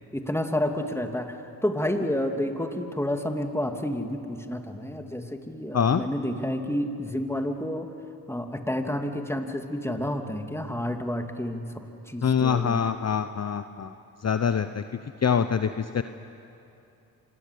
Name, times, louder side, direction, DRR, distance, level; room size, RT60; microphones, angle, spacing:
voice 1, 0.1-7.9 8.3-11.7 12.1-12.8, left 1 dB, 5° left, 5 dB, 2.8 m, -30 dB
voice 2, 12.2-13.9 14.2-14.8 15.2-16.0, left 7 dB, 40° left, 10 dB, 1.0 m, -24 dB
26.0 x 20.5 x 8.5 m, 2.7 s
supercardioid pair, 50°, 40 cm